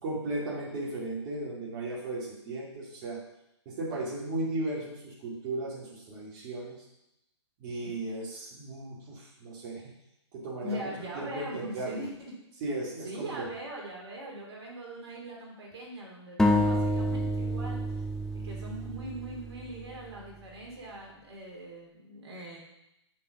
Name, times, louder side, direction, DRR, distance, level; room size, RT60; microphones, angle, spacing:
voice 1, 0.0-3.2 3.7-6.9 7.6-9.9 10.3-10.9 11.1-12.0 12.6-13.5, right 2 dB, 40° right, -6 dB, 2.5 m, -36 dB
voice 2, 10.6-12.3 13.0-18.0 18.4-22.6, right 1 dB, 60° right, -2 dB, 2.9 m, -41 dB
sound 1, 16.4-20.0, equal, 5° left, 0.7 m, -28 dB
5.9 x 5.8 x 6.4 m, 0.85 s
hypercardioid pair, 130°, 15 cm